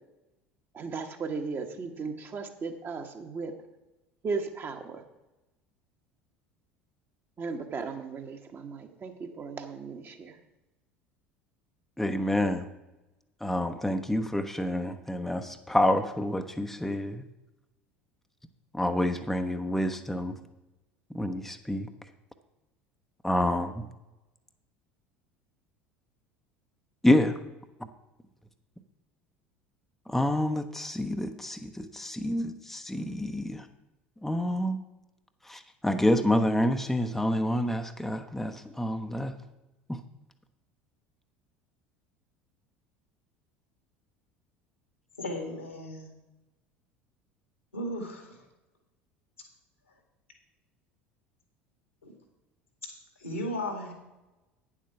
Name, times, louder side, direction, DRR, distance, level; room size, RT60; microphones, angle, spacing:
voice 1, 0.7-3.5 4.2-5.0 7.4-10.4, right 4 dB, 35° right, 5 dB, 1.3 m, -36 dB
voice 2, 12.0-12.6 13.4-17.2 18.7-20.3 21.1-21.9 23.2-23.7 27.0-27.3 30.1-33.6 34.2-34.8 35.5-39.3 39.9-40.0, left 1 dB, 5° left, 6 dB, 0.7 m, -28 dB
voice 3, 45.2-46.1 47.7-48.4 52.0-52.1 53.2-53.9, left 1 dB, 90° left, 3 dB, 2.2 m, -35 dB
9.3 x 7.4 x 5.8 m, 1.0 s
figure-of-eight pair, 70°, 7 cm